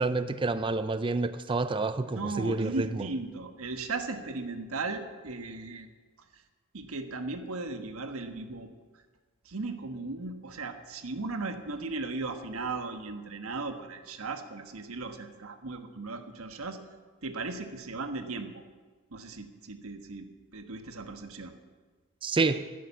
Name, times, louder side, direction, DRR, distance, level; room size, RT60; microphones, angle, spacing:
voice 1, 0.0-3.0 22.2-22.7, right 3 dB, 25° right, 0.4 m, -28 dB
voice 2, 2.0-5.9 6.3-6.4 6.7-9.0 9.4-16.8 17.2-18.6 19.1-21.5, right 3 dB, 75° right, 1.3 m, -37 dB
14.5 x 10.0 x 7.1 m
head